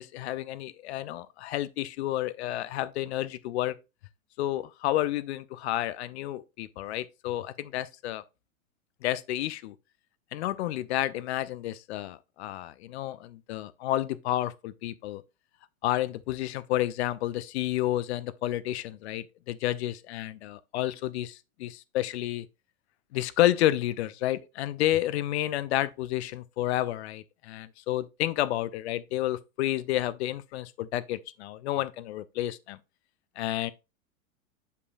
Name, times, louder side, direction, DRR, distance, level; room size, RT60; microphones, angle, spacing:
voice 1, 0.0-3.7 4.4-8.2 9.0-9.7 10.3-15.2 15.8-22.5 23.1-32.8 33.4-33.7, left 14 dB, 50° left, 0.6 m, -30 dB
7.9 x 5.5 x 2.5 m
figure-of-eight pair, 100°, 42 cm